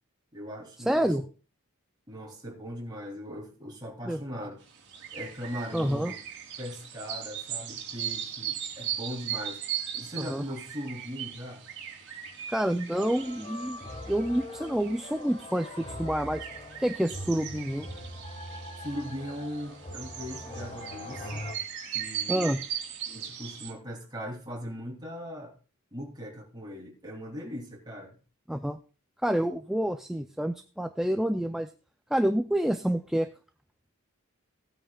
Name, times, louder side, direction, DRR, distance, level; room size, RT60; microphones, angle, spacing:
voice 1, 0.3-1.2 2.1-4.6 5.1-6.1 6.6-9.6 9.9-11.6 18.8-21.5 21.9-22.5 23.1-25.5 25.9-28.1, equal, 20° right, 3.1 m, -39 dB
voice 2, 0.9-1.2 4.1-4.2 5.7-6.1 10.2-10.4 12.5-13.8 14.1-16.5 16.8-17.9 22.3-22.6 28.5-28.8 29.2-31.7 32.1-33.3, right 1 dB, ahead, 0.4 m, -28 dB
sound 1, 4.6-23.7, right 9 dB, 55° right, 2.6 m, -39 dB
sound 2, 12.9-21.5, left 1 dB, 25° left, 1.6 m, -42 dB
17.5 x 9.0 x 2.3 m
head